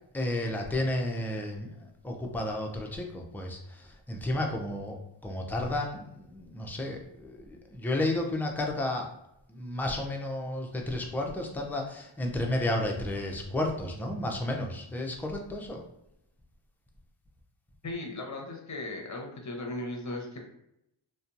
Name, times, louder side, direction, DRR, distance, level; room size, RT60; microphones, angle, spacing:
voice 1, 0.1-1.7 2.0-9.1 9.5-15.8, left 1 dB, 5° left, 1 dB, 0.3 m, -32 dB
voice 2, 17.8-20.4, left 2 dB, 35° left, 2 dB, 0.7 m, -37 dB
2.6 x 2.2 x 2.5 m, 0.81 s
cardioid pair, 55°, 50 cm